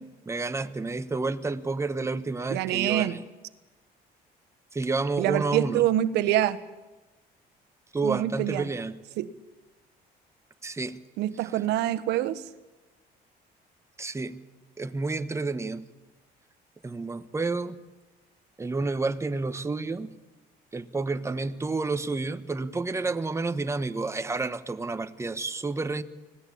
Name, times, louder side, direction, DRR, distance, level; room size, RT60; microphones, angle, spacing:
voice 1, 0.3-3.2 4.7-5.8 7.9-9.0 10.6-11.0 14.0-14.4 14.8-15.8 16.8-17.8 18.6-20.1 20.7-26.0, right 3 dB, 15° right, 1.2 m, -30 dB
voice 2, 2.5-3.2 5.2-6.6 8.0-8.6 9.2-9.3 11.2-12.4, right 13 dB, 90° right, 1.3 m, -25 dB
25.0 x 17.5 x 8.7 m
cardioid pair, 110°, 17 cm